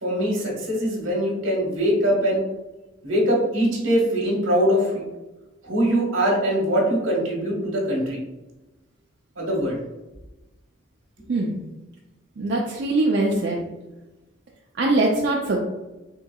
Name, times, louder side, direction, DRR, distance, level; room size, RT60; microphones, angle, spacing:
voice 1, 0.0-2.4 3.0-5.0 5.6-8.2 9.4-9.8, equal, 85° right, -2 dB, 1.4 m, -22 dB
voice 2, 12.4-13.6 14.8-15.6, right 2 dB, 55° right, -2 dB, 0.4 m, -22 dB
4.4 x 3.7 x 2.3 m, 1.0 s
head